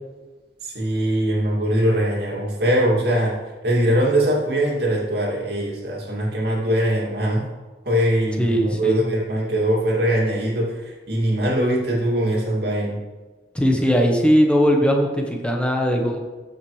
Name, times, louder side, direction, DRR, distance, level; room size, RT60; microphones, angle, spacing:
voice 1, 0.6-3.4 3.6-7.5 7.8-13.0, right 1 dB, 65° right, -3 dB, 2.5 m, -21 dB
voice 2, 8.4-9.1 13.5-16.2, equal, 5° left, 1 dB, 1.1 m, -19 dB
14.0 x 6.1 x 3.3 m, 1.3 s
head